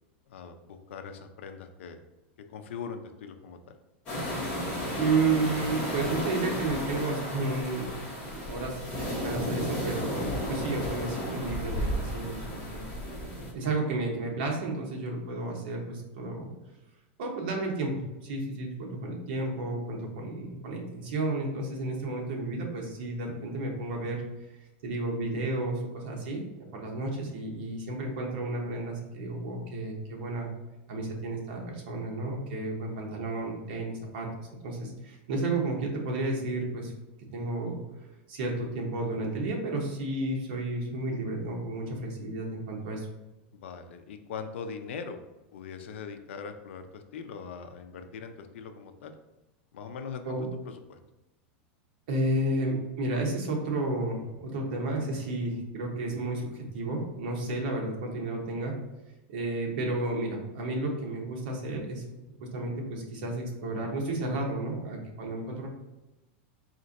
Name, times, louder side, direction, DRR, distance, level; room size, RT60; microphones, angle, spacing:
voice 1, 0.3-2.0 2.5-3.8 43.5-45.2 45.5-49.1 49.7-50.4 50.7-51.0, left 6 dB, 85° left, 7 dB, 0.5 m, -41 dB
sound 1, 4.1-13.5, equal, 20° left, 1.2 m, -33 dB
voice 2, 5.0-8.0 8.3-12.9 13.5-16.5 17.2-24.2 24.8-30.5 30.9-36.9 37.3-37.8 38.3-43.1 50.2-50.5 52.1-58.8 59.3-62.0 62.5-65.7, right 2 dB, 55° right, 0 dB, 1.0 m, -32 dB
4.2 x 2.5 x 4.0 m, 1.0 s
supercardioid pair, 175°, 6 cm